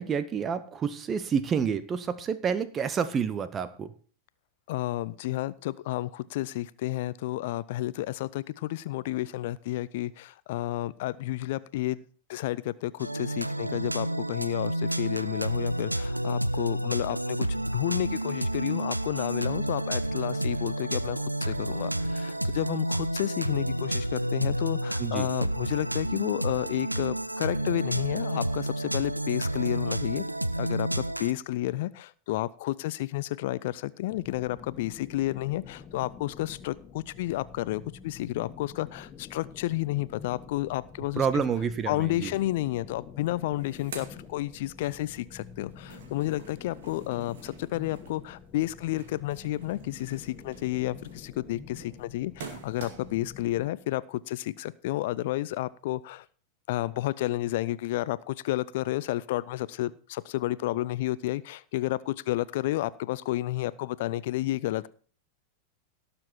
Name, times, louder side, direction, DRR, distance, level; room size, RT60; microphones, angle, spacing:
voice 1, 0.0-3.9 25.0-25.3 41.2-42.3, right 7 dB, 25° right, 14 dB, 0.7 m, -29 dB
voice 2, 4.7-12.0 12.3-30.2 30.6-41.4 41.9-56.3 56.7-64.9, left 16 dB, 50° left, 19 dB, 0.4 m, -31 dB
sound 1, 13.0-31.3, right 1 dB, 85° right, 0.5 m, -30 dB
sound 2, 34.1-53.7, left 6 dB, 25° left, 1.1 m, -48 dB
sound 3, 42.9-43.0 43.3-45.0 45.4-53.3, right 5 dB, 55° right, 2.3 m, -48 dB
17.5 x 7.0 x 4.4 m, 0.42 s
figure-of-eight pair, 90°, 0 cm